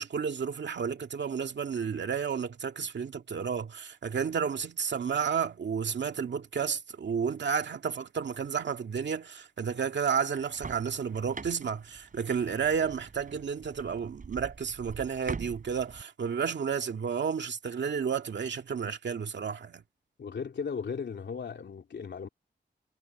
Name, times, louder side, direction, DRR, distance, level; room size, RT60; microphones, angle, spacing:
voice 1, 0.0-19.8, right 6 dB, 85° right, 2.2 m, -31 dB
sound 1, 10.3-16.0, right 4 dB, 50° right, 3.9 m, -44 dB
voice 2, 20.2-22.3, left 6 dB, 85° left, 3.3 m, -36 dB
wide cardioid pair, 135°, 18 cm